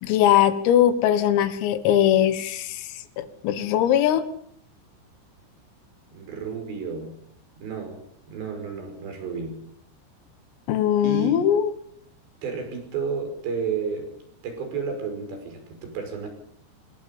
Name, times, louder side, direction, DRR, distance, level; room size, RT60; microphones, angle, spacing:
voice 1, 0.0-2.9 3.2-4.2 10.7-11.7, left 10 dB, 85° left, 11 dB, 4.3 m, -20 dB
voice 2, 6.1-7.2 7.6-8.0 8.3-9.6 11.0-11.5 12.4-14.1 14.4-16.3, right 5 dB, 55° right, 5 dB, 7.7 m, -31 dB
28.0 x 21.0 x 5.4 m, 0.64 s
omnidirectional pair, 5.9 m